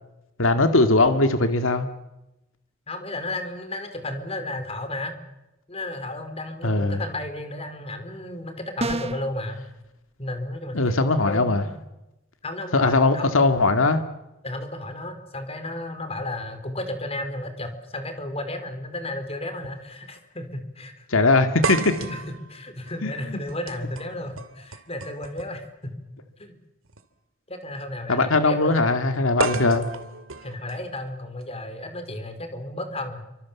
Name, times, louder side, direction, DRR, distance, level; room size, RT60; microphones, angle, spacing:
voice 1, 0.4-1.9 6.6-7.0 10.7-11.6 12.7-14.0 21.1-21.9 23.0-23.1 28.1-29.9, left 3 dB, 75° left, 8 dB, 2.1 m, -20 dB
voice 2, 2.9-5.1 5.7-9.6 10.2-11.8 12.4-13.3 14.4-21.1 22.0-26.1 26.4-26.6 27.5-29.4 30.4-33.3, left 1 dB, 30° left, 8 dB, 4.3 m, -33 dB
sound 1, 8.8-9.3, right 2 dB, 30° right, 1.1 m, -28 dB
sound 2, 18.4-18.5 19.6-19.8 20.2-20.3 21.6-25.7 26.8-27.0 29.4-31.4, right 3 dB, 80° right, 2.7 m, -33 dB
29.5 x 25.5 x 7.3 m, 0.95 s
head